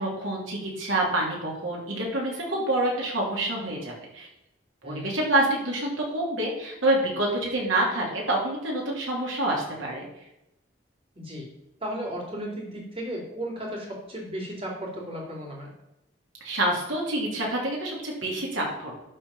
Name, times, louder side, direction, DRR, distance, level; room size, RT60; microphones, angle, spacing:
voice 1, 0.0-4.3 4.8-10.1 16.4-18.9, right 1 dB, 90° right, -2 dB, 3.2 m, -27 dB
voice 2, 11.2-11.5 11.8-15.7, equal, 30° right, -1 dB, 2.6 m, -35 dB
11.5 x 4.4 x 5.6 m, 0.89 s
head